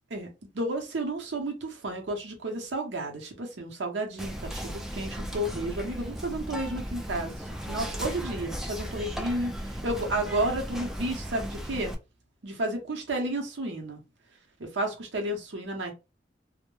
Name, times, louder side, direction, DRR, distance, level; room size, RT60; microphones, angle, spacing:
voice 1, 0.5-7.3 7.7-11.9 12.4-14.0 14.6-15.9, right 1 dB, 75° right, 0.7 m, -32 dB
Whispering, 4.2-11.9, equal, ahead, 0.3 m, -36 dB
2.2 x 2.0 x 3.0 m
head